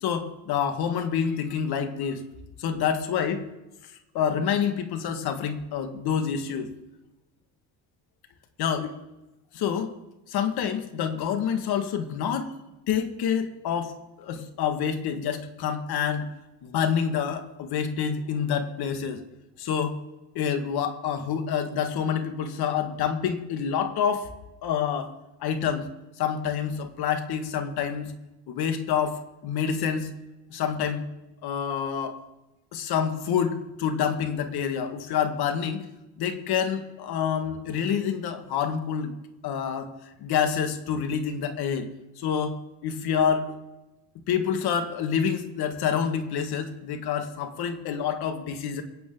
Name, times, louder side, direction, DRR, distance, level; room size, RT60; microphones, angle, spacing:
voice 1, 0.0-2.2 2.6-3.5 4.1-6.7 8.6-8.9 9.5-9.9 10.3-12.5 12.9-13.9 14.2-16.3 16.6-19.2 19.6-20.0 20.4-24.3 24.6-25.1 25.4-25.9 26.2-28.1 28.5-30.1 30.5-31.1 31.4-32.2 32.7-35.9 36.2-39.1 39.4-39.9 40.2-41.9 42.2-43.5 44.3-48.8, left 7 dB, 65° left, 7 dB, 1.9 m, -27 dB
23.0 x 8.9 x 3.8 m, 0.98 s
supercardioid pair, 75°, 41 cm